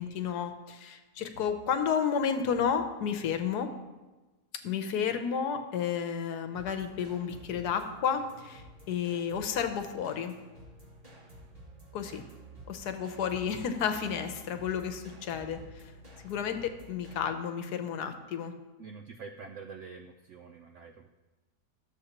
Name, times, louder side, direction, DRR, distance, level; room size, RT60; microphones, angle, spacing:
voice 1, 0.0-3.7 4.6-10.3 11.9-12.2 12.7-15.8 16.2-18.5, left 7 dB, 75° left, 7 dB, 1.3 m, -32 dB
sound 1, 6.5-17.2, right 2 dB, 35° right, 2.1 m, -51 dB
voice 2, 18.8-21.2, right 5 dB, 75° right, 5 dB, 0.6 m, -46 dB
13.0 x 7.1 x 2.9 m, 1.2 s
omnidirectional pair, 1.8 m